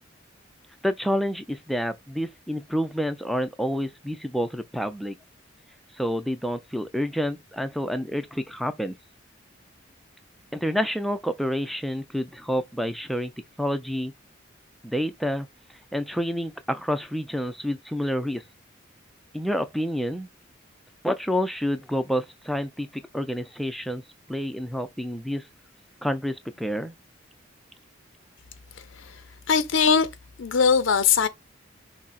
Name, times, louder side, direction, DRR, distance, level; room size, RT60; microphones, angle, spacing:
voice 1, 0.8-5.2 6.0-9.0 10.5-13.3 13.6-14.1 14.8-15.5 15.9-18.4 19.3-20.3 21.0-24.0 24.3-25.4 26.0-26.9, equal, ahead, 0.4 m, -28 dB
voice 2, 29.5-30.1 30.4-31.3, left 6 dB, 80° left, 0.5 m, -20 dB
6.1 x 2.1 x 4.1 m
head